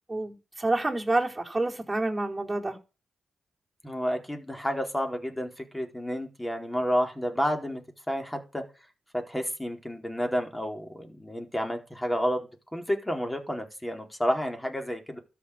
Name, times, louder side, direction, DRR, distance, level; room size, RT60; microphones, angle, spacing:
voice 1, 0.1-2.8, right 2 dB, 15° right, 4.4 m, -28 dB
voice 2, 3.8-7.8 8.1-8.6 9.1-15.2, equal, 10° left, 4.3 m, -30 dB
13.0 x 6.1 x 8.9 m
supercardioid pair, 50°, 0 cm